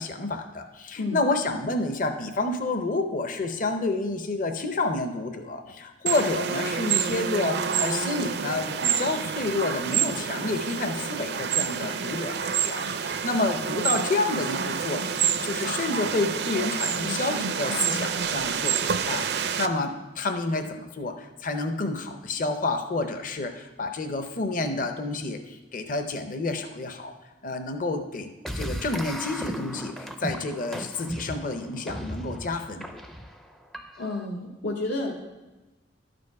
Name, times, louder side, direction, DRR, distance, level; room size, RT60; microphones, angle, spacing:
voice 1, 0.0-27.1 27.4-32.9, left 2 dB, 45° left, 7 dB, 0.7 m, -29 dB
sound 1, 6.1-19.7, right 7 dB, 60° right, 0.5 m, -28 dB
sound 2, 28.4-34.3, equal, ahead, 0.4 m, -36 dB
voice 2, 34.0-35.2, left 2 dB, 80° left, -1 dB, 0.9 m, -30 dB
12.0 x 5.2 x 4.6 m, 1.1 s
head